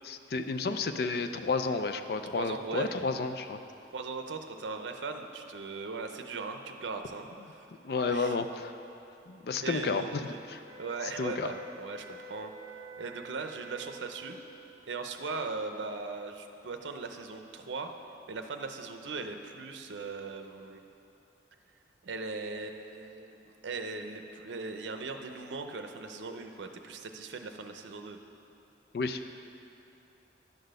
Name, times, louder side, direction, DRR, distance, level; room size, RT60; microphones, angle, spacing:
voice 1, 0.0-3.6 7.8-8.7 9.3-10.6 11.2-11.5 28.9-29.2, left 4 dB, 60° left, 9 dB, 0.4 m, -31 dB
voice 2, 2.3-3.0 3.9-7.3 8.1-8.4 9.6-10.4 10.8-14.4 14.9-17.9 18.3-20.8 22.0-28.2, right 4 dB, 90° right, 6 dB, 0.5 m, -39 dB
sound 1, 10.6-14.5, right 2 dB, 25° right, 1.4 m, -48 dB
10.5 x 4.1 x 6.5 m, 2.8 s
head